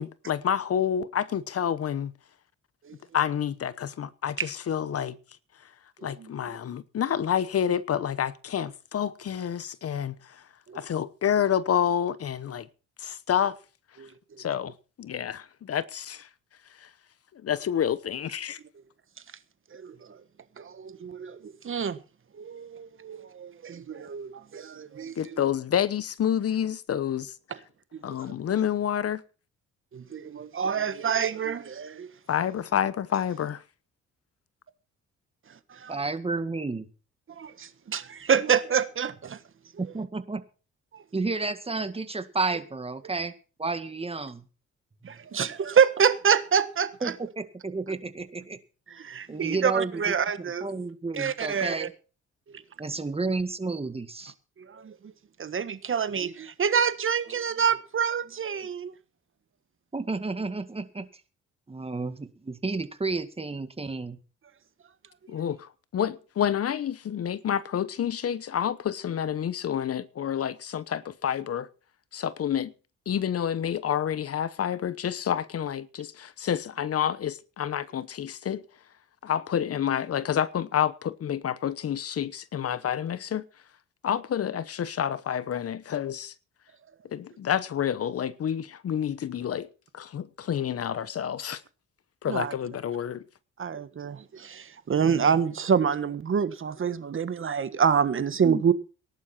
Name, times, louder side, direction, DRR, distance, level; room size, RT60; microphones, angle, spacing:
voice 1, 0.0-2.1 3.1-5.2 6.0-10.3 10.7-12.7 13.0-13.6 14.4-16.3 16.8-16.9 17.3-18.6 25.2-27.3 28.0-29.2 32.3-33.6 65.3-71.7 72.1-72.7 73.1-78.6 79.2-83.5 84.0-86.3 87.1-89.7 89.9-91.6 92.2-93.2, left 9 dB, 50° left, 1.0 m, -28 dB
voice 2, 20.6-22.0 22.3-25.4 27.9-28.2 29.9-32.1 35.8-36.0 37.4-39.4 45.0-47.1 48.9-50.7 51.1-51.9 54.7-55.1 55.4-58.9 92.3-92.5 93.6-98.7, right 7 dB, 45° right, 1.5 m, -27 dB
voice 3, 35.9-36.9 39.8-40.4 41.1-43.3 43.6-44.4 47.0-48.6 49.3-50.1 50.6-51.9 52.8-54.3 59.9-61.1 61.7-64.2 98.4-98.7, right 3 dB, 20° right, 1.9 m, -31 dB
18.5 x 11.0 x 4.4 m
cardioid pair, 90°, 30 cm